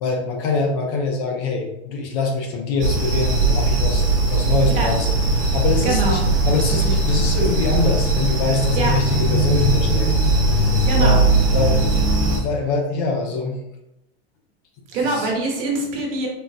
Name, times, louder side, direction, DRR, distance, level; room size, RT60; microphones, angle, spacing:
voice 1, 0.0-5.1 5.4-10.1 10.9-11.2 11.5-11.8 12.1-13.6 15.0-15.3, left 3 dB, 40° left, 2 dB, 0.5 m, -24 dB
sound 1, 2.8-12.4, right 2 dB, 25° right, 0.9 m, -19 dB
voice 2, 5.8-6.2 8.8-8.9 10.9-11.2 14.9-16.3, right 2 dB, 65° right, -1 dB, 1.0 m, -23 dB
3.7 x 2.1 x 2.5 m, 0.88 s
supercardioid pair, 160°, 32 cm